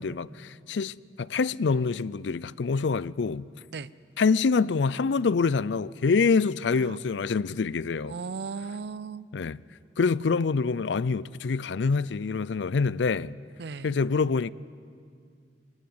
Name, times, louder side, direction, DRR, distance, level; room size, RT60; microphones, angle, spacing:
voice 1, 0.0-3.5 4.2-8.1 9.3-9.6 10.0-13.3 13.8-14.5, left 4 dB, 80° left, 0.5 m, -26 dB
voice 2, 8.0-9.3 13.6-14.0, right 4 dB, 65° right, 0.5 m, -37 dB
24.5 x 14.0 x 9.5 m
head